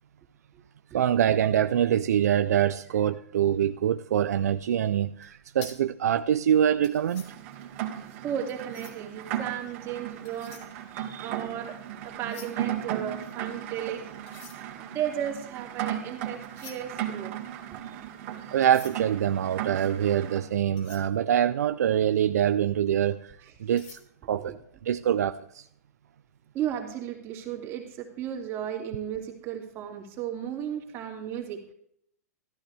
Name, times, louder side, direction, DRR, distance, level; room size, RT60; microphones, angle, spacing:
voice 1, 0.9-7.2 11.0-11.3 18.5-24.0 24.3-24.5 24.8-25.6, right 10 dB, 75° right, 0.5 m, -25 dB
sound 1, 5.2-9.2 10.0-11.7 12.0-13.7 14.2-22.1 22.6-22.8 23.2-24.0, left 6 dB, 50° left, 3.0 m, -51 dB
Rain, 7.1-20.5, right 11 dB, 45° right, 2.1 m, -36 dB
voice 2, 8.2-10.7 11.1-11.8 12.0-14.0 14.7-17.3 23.4-23.5 24.5-24.6 26.5-31.7, right 9 dB, 30° right, 2.8 m, -34 dB
14.0 x 12.0 x 3.5 m
hypercardioid pair, 140°, 9 cm